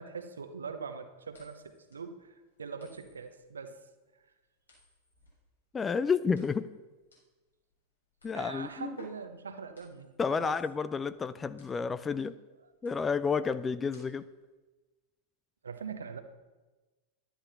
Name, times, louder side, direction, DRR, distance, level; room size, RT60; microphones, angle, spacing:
voice 1, 0.0-3.8 8.3-10.5 15.6-16.2, right 5 dB, 70° right, 7 dB, 1.0 m, -42 dB
sound 1, 1.3-14.5, left 2 dB, 75° left, 4.0 m, -61 dB
voice 2, 5.7-6.7 8.2-9.0 10.2-12.4 12.8-14.2, left 5 dB, 15° left, 14 dB, 0.3 m, -30 dB
11.5 x 9.9 x 4.1 m, 1.2 s
figure-of-eight pair, 90°, 0 cm